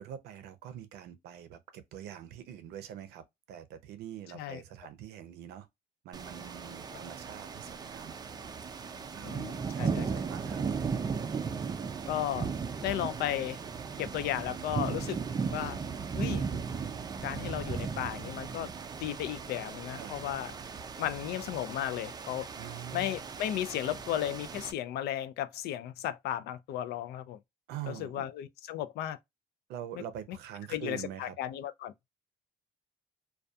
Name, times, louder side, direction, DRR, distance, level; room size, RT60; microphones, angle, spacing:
voice 1, 0.0-5.7 6.0-8.2 9.1-10.6 19.9-20.1 22.6-23.3 27.7-28.3 29.7-31.4, right 10 dB, 80° right, 0.6 m, -44 dB
sound 1, 6.1-24.7, right 5 dB, 25° right, 0.3 m, -37 dB
voice 2, 9.2-10.1 12.1-12.5 12.8-13.6 14.0-15.2 15.5-15.8 16.1-16.4 17.2-18.7 19.0-20.5 21.0-22.5 22.9-27.4 27.9-29.2 29.9-30.0 30.7-31.9, left 12 dB, 75° left, 0.4 m, -34 dB
2.3 x 2.3 x 2.6 m
cardioid pair, 110°, 17 cm